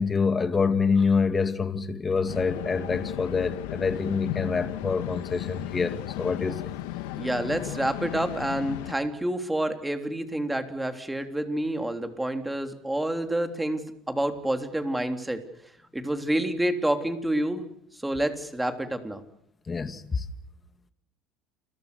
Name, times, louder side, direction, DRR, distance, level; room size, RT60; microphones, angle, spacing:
voice 1, 0.0-6.7 19.7-20.3, left 5 dB, 20° left, 2.2 m, -26 dB
sound 1, 2.3-8.9, left 15 dB, 90° left, 1.8 m, -35 dB
voice 2, 7.2-15.4 15.9-17.6 17.9-19.2, right 1 dB, 5° right, 3.4 m, -28 dB
29.5 x 22.5 x 6.9 m
cardioid pair, 130°, 0 cm